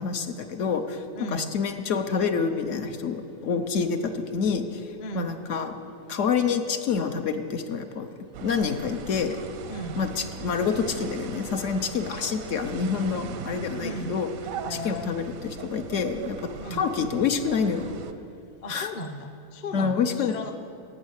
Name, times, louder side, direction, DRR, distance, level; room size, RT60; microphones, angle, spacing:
voice 1, 0.0-8.1 8.4-9.4 9.9-14.3 14.7-17.9 18.7-18.9 19.7-20.4, left 6 dB, 70° left, 6 dB, 1.1 m, -27 dB
voice 2, 1.1-1.5 5.0-5.3 9.7-10.0 13.8-14.1 14.7-15.1 16.6-16.8 18.6-20.6, equal, 40° left, 6 dB, 0.7 m, -36 dB
sound 1, 8.3-18.1, right 7 dB, 90° right, 1.1 m, -39 dB
16.5 x 6.3 x 8.1 m, 2.7 s
omnidirectional pair, 1.4 m